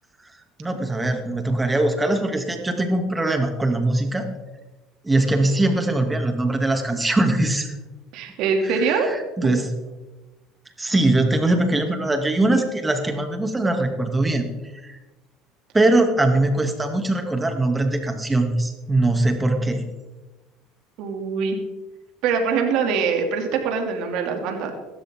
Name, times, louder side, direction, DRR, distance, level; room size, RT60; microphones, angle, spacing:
voice 1, 0.6-4.2 5.0-7.7 8.6-9.7 10.8-14.5 14.8-15.0 15.7-19.9, right 2 dB, 15° right, 4 dB, 2.7 m, -21 dB
voice 2, 8.1-9.1 9.4-9.6 21.0-21.6 22.2-24.7, right 5 dB, 70° right, 3 dB, 2.9 m, -23 dB
17.0 x 13.0 x 3.9 m, 1.1 s
supercardioid pair, 90°, 0 cm